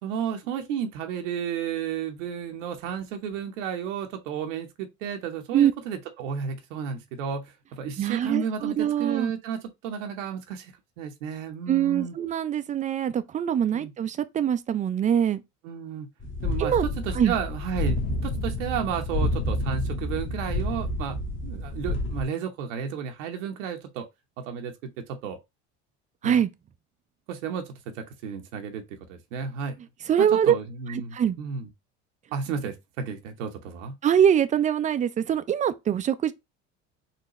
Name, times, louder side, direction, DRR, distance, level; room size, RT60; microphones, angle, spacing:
voice 1, 0.0-12.1 13.7-13.9 15.6-16.1 16.4-21.2 21.4-24.1 24.4-25.4 26.2-26.4 27.3-29.8 30.2-31.7 32.3-34.0, right 7 dB, 80° right, 0.8 m, -32 dB
voice 2, 8.0-9.3 11.7-15.4 16.6-16.9 17.1-17.3 26.2-26.5 30.1-30.5 30.9-31.4 34.0-36.3, right 9 dB, 20° right, 0.3 m, -23 dB
sound 1, 16.2-22.2, left 2 dB, 30° left, 1.2 m, -29 dB
4.0 x 2.2 x 2.9 m
hypercardioid pair, 75°, 36 cm